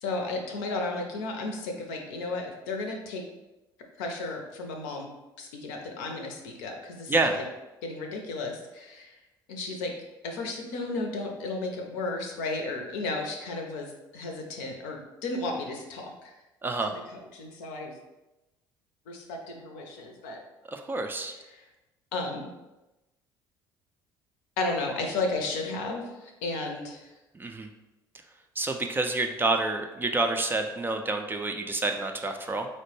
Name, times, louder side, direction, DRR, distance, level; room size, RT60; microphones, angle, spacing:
voice 1, 0.0-3.2 4.0-5.1 5.4-7.4 7.8-9.2 9.5-9.9 10.2-16.3 17.1-17.9 19.1-20.4 22.1-22.5 24.6-27.1, left 3 dB, 65° left, 2 dB, 0.6 m, -33 dB
voice 2, 7.1-7.4 16.6-16.9 20.7-21.3 27.3-27.7 28.6-32.7, right 2 dB, 20° right, 4 dB, 0.4 m, -28 dB
4.3 x 2.1 x 3.1 m, 1.0 s
figure-of-eight pair, 55°, 12 cm